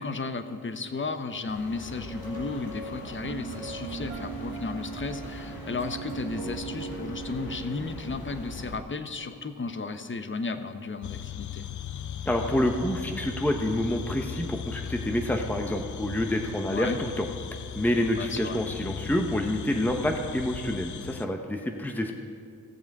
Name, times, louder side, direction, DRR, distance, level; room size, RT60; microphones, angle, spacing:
voice 1, 0.0-11.7 16.6-17.0 18.2-18.6, left 3 dB, 35° left, 9 dB, 0.9 m, -34 dB
sound 1, 1.5-8.8, left 2 dB, 75° left, 1.4 m, -42 dB
sound 2, 2.0-7.9, right 5 dB, 90° right, 1.6 m, -39 dB
sound 3, 11.0-21.3, left 8 dB, 55° left, 0.5 m, -38 dB
voice 2, 12.3-17.3 17.7-22.2, left 1 dB, 5° left, 3 dB, 0.9 m, -28 dB
17.0 x 7.0 x 4.8 m, 2.4 s
cardioid pair, 50°, 36 cm